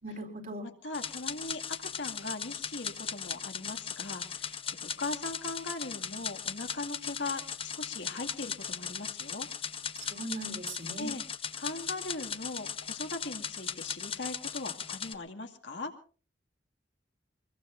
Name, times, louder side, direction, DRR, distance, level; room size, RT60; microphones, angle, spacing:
voice 1, 0.0-0.7 10.0-11.1, right 1 dB, 50° right, 3 dB, 4.3 m, -39 dB
voice 2, 0.6-9.5 10.0-10.1 11.0-11.2 11.6-15.9, left 3 dB, 75° left, 4 dB, 2.3 m, -39 dB
sound 1, 0.9-15.1, left 7 dB, 30° left, 0.9 m, -38 dB
24.5 x 21.0 x 2.6 m, 0.38 s
head